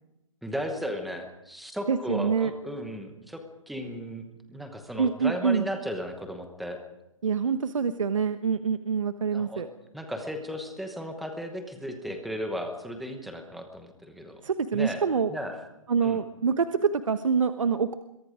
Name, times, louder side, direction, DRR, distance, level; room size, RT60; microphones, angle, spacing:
voice 1, 0.4-4.2 4.5-6.8 9.3-9.6 9.9-14.4 14.7-15.0 15.3-15.6 16.0-16.2, equal, ahead, 4 dB, 1.0 m, -35 dB
voice 2, 1.9-2.5 5.0-5.7 7.2-9.7 14.4-15.3 15.9-17.9, right 6 dB, 70° right, 9 dB, 1.2 m, -26 dB
26.5 x 23.0 x 5.1 m, 0.90 s
hypercardioid pair, 180°, 17 cm